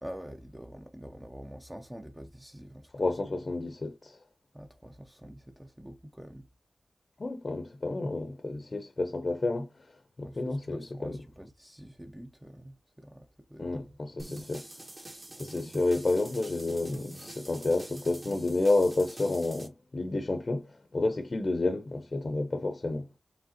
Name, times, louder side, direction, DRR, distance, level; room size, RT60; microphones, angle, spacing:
voice 1, 0.0-3.1 4.5-6.5 10.2-13.9, equal, 10° right, 0.6 m, -46 dB
voice 2, 2.9-4.2 7.2-9.7 10.2-11.2 13.6-14.6 15.4-23.1, left 2 dB, 45° left, 0.6 m, -30 dB
sound 1, 14.2-19.7, right 1 dB, 25° right, 1.0 m, -46 dB
4.9 x 3.4 x 2.8 m
wide cardioid pair, 90°, 0 cm